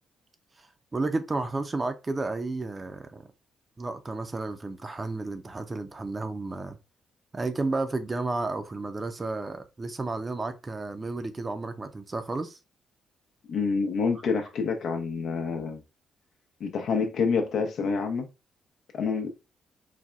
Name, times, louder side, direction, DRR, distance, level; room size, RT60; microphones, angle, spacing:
voice 1, 0.9-3.3 3.8-6.8 7.3-12.6, right 3 dB, 30° right, 0.5 m, -32 dB
voice 2, 13.5-15.8 16.6-18.3 18.9-19.3, left 5 dB, 65° left, 0.7 m, -27 dB
4.1 x 2.2 x 2.4 m
supercardioid pair, 55°, 0 cm